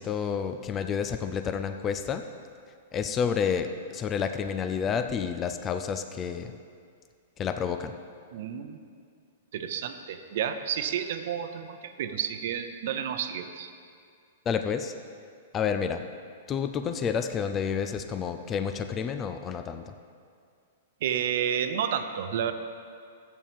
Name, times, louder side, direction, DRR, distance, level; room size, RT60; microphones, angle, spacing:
voice 1, 0.0-2.2 2.9-6.5 7.4-8.0 14.5-14.9 15.5-16.0 16.5-19.9, left 7 dB, 20° left, 7 dB, 0.4 m, -29 dB
voice 2, 8.3-8.8 9.5-13.7 21.0-22.5, right 8 dB, 55° right, 9 dB, 0.7 m, -31 dB
13.5 x 8.4 x 3.6 m, 2.3 s
hypercardioid pair, 155°, 0 cm